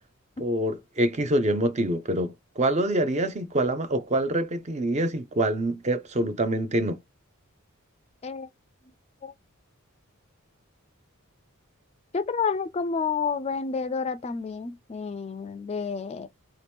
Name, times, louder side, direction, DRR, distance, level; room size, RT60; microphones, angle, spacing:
voice 1, 0.4-7.0, right 1 dB, 30° right, 0.5 m, -25 dB
voice 2, 12.1-16.3, left 5 dB, 30° left, 0.3 m, -29 dB
2.9 x 2.9 x 3.4 m
head